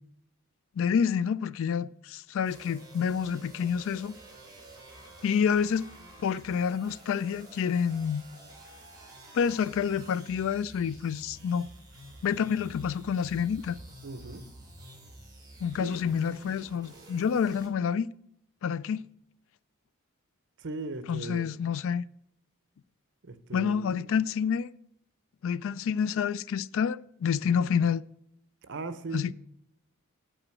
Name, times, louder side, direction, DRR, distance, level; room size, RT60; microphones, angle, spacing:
voice 1, 0.8-4.1 5.2-5.8 6.2-8.2 9.3-11.7 12.2-13.8 15.6-18.1 18.6-19.0 21.1-22.0 23.5-24.7 25.4-28.0 29.1-29.3, left 7 dB, 65° left, 0.3 m, -28 dB
sound 1, 2.4-17.7, right 1 dB, 20° right, 2.3 m, -50 dB
voice 2, 14.0-14.5 15.8-16.1 20.6-21.5 23.2-24.2 27.5-27.7 28.6-29.3, right 3 dB, 55° right, 0.7 m, -39 dB
8.9 x 5.0 x 7.6 m
head